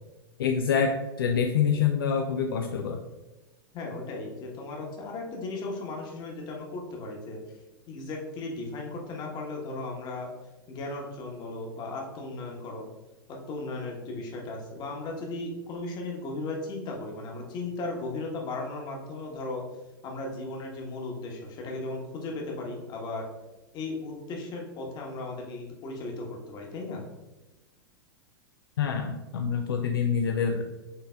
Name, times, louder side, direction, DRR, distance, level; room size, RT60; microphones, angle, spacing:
voice 1, 0.4-3.0 28.8-30.7, left 6 dB, 70° left, 4 dB, 0.4 m, -26 dB
voice 2, 3.7-7.4 7.9-10.3 10.7-12.9 13.3-19.6 20.0-23.2 23.7-27.0, left 2 dB, 35° left, 0 dB, 1.2 m, -36 dB
6.6 x 3.3 x 2.3 m, 1.1 s
figure-of-eight pair, 95°, 12 cm